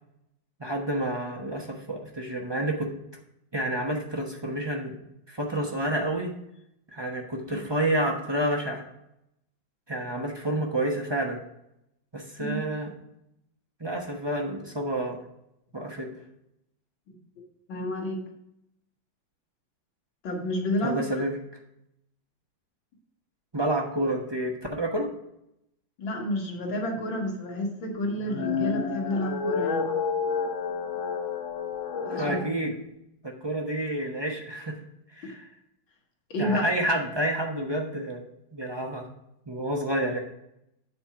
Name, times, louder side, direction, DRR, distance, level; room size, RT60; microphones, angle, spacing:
voice 1, 0.6-2.9 3.5-5.0 5.3-6.3 6.9-8.8 9.9-11.4 12.1-12.9 13.8-15.2 15.7-16.1 20.8-21.4 23.5-25.1 32.1-32.7 33.2-34.7 35.1-35.4 36.4-39.1 39.5-40.2, right 1 dB, 25° right, 1 dB, 0.6 m, -29 dB
voice 2, 17.7-18.2 20.2-21.0 26.0-29.9 32.1-32.4 35.2-35.3 36.3-36.6, left 1 dB, 80° left, 0 dB, 2.4 m, -30 dB
sound 1, 28.1-32.5, left 5 dB, 55° left, 0.8 m, -30 dB
8.2 x 4.4 x 5.9 m, 0.81 s
omnidirectional pair, 2.1 m